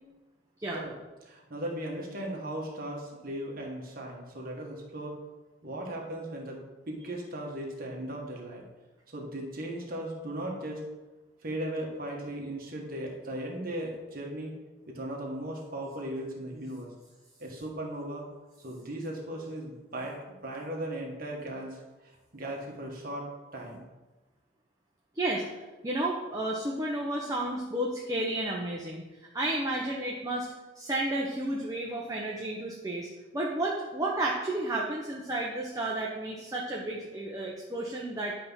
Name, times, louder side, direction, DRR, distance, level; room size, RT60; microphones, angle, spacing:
voice 1, 1.2-5.2 5.6-6.6 6.9-8.6 9.1-10.8 11.4-14.5 14.9-16.9 17.4-18.2 18.6-23.8, right 1 dB, 45° right, -1 dB, 1.4 m, -37 dB
voice 2, 25.1-29.0 29.3-30.5 30.8-33.1 33.3-38.4, right 1 dB, 15° right, -3 dB, 0.8 m, -32 dB
10.5 x 3.5 x 5.6 m, 1.2 s
head